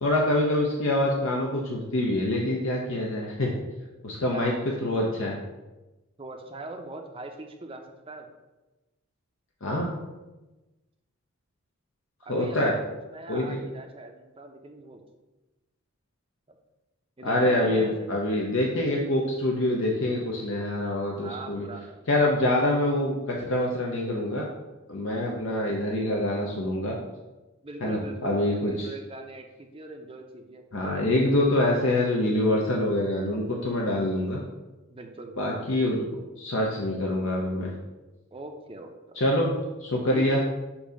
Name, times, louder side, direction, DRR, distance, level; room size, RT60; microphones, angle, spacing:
voice 1, 0.0-3.5 4.0-4.5 4.8-5.4 9.6-10.0 12.3-12.7 13.3-13.6 17.2-21.7 22.1-24.5 24.9-27.0 27.8-28.9 30.7-34.4 35.4-36.1 36.4-37.7 39.2-39.5 39.8-40.4, left 1 dB, 60° left, -1 dB, 0.7 m, -25 dB
voice 2, 6.2-8.3 12.2-12.7 13.1-15.0 17.2-18.1 21.2-22.1 27.6-31.1 34.9-35.4 38.3-39.2 40.1-40.3, right 2 dB, 25° right, 4 dB, 0.6 m, -41 dB
7.1 x 2.7 x 5.1 m, 1.1 s
head